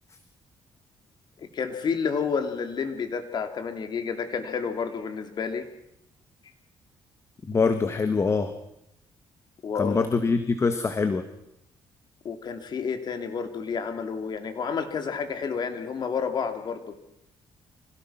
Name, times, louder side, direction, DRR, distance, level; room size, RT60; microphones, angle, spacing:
voice 1, 1.4-5.6 9.6-10.0 12.2-16.8, left 6 dB, 50° left, 7 dB, 3.0 m, -30 dB
voice 2, 7.5-8.5 9.8-11.2, left 4 dB, 30° left, 9 dB, 1.7 m, -24 dB
26.0 x 17.5 x 5.9 m, 0.79 s
cardioid pair, 90°, 9 cm